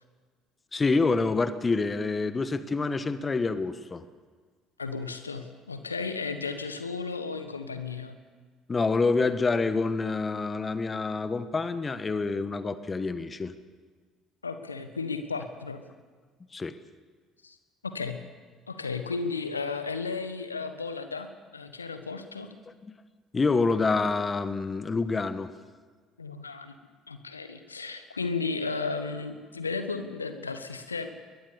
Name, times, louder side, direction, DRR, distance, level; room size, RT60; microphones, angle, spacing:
voice 1, 0.7-4.0 8.7-13.5 16.5-16.8 22.8-22.9 23.3-25.5, left 4 dB, 25° left, 12 dB, 1.5 m, -27 dB
voice 2, 4.8-8.2 14.4-15.8 17.4-17.6 17.8-18.2 18.7-22.5 26.2-26.7 27.1-31.1, left 4 dB, 85° left, 9 dB, 1.3 m, -34 dB
22.0 x 20.0 x 7.1 m, 1.5 s
figure-of-eight pair, 55°, 0 cm